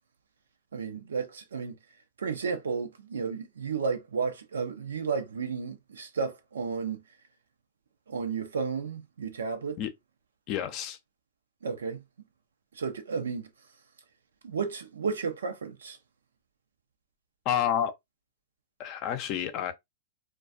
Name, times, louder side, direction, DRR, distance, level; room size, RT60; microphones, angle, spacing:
voice 1, 0.7-1.8 2.2-7.0 8.1-9.8 11.6-12.0 12.7-13.5 14.4-16.0, right 5 dB, 80° right, 0.6 m, -33 dB
voice 2, 10.5-11.0 17.4-17.9 18.8-19.7, left 9 dB, 45° left, 0.5 m, -29 dB
2.3 x 2.2 x 2.5 m
hypercardioid pair, 110°, 0 cm